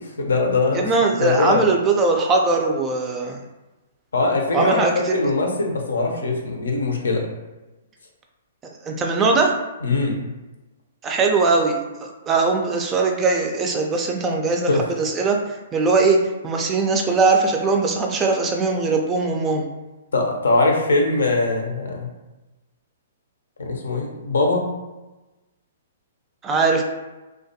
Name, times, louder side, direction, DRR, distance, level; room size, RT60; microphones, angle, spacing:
voice 1, 0.0-1.6 4.1-7.2 9.8-10.3 14.7-14.9 20.1-22.1 23.6-24.6, left 3 dB, 85° left, 1 dB, 0.5 m, -22 dB
voice 2, 0.7-3.4 4.5-5.2 8.8-9.5 11.0-16.2 16.4-19.7 26.4-26.8, right 3 dB, 20° right, 2 dB, 0.3 m, -20 dB
2.3 x 2.2 x 2.7 m, 1.1 s
hypercardioid pair, 130°, 0 cm